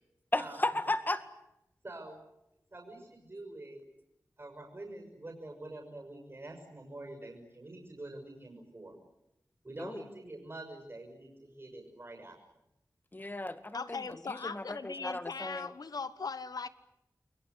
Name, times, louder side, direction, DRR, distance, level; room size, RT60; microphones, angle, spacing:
voice 1, 0.3-1.2 9.8-10.0 13.1-14.0 14.3-15.7, left 2 dB, 30° left, 2.0 m, -34 dB
voice 2, 1.8-2.2 2.7-3.8 4.4-9.0 9.6-12.4, right 2 dB, 40° right, 6.5 m, -46 dB
voice 3, 13.7-16.7, left 4 dB, 80° left, 1.2 m, -39 dB
28.5 x 22.0 x 8.2 m
wide cardioid pair, 80°, 6 cm